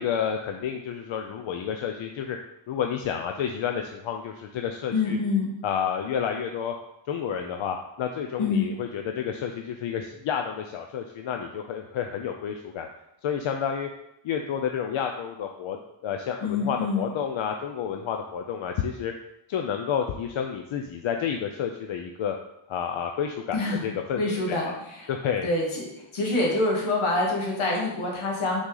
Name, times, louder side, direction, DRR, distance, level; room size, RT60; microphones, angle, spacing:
voice 1, 0.0-2.4 2.7-5.2 5.6-6.7 7.1-12.9 13.2-13.9 14.2-15.8 16.0-19.1 19.5-22.4 22.7-24.4 24.7-24.8 25.1-25.5, left 8 dB, 70° left, 4 dB, 0.6 m, -30 dB
voice 2, 4.9-5.5 8.4-8.7 16.4-17.1 23.5-23.8 24.2-25.1 25.4-28.6, left 3 dB, 90° left, -2 dB, 1.9 m, -26 dB
5.8 x 4.1 x 3.9 m, 0.82 s
wide cardioid pair, 120°, 49 cm